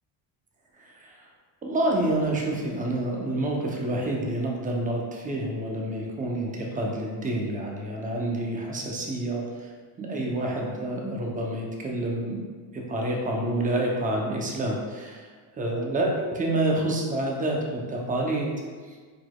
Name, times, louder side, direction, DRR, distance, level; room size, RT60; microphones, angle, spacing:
voice 1, 0.8-1.3 1.6-9.7 10.0-12.5 12.7-15.3 15.6-18.5 18.9-19.0, right 1 dB, 15° right, -1 dB, 0.6 m, -28 dB
5.0 x 3.9 x 2.3 m, 1.5 s
cardioid pair, 135°, 48 cm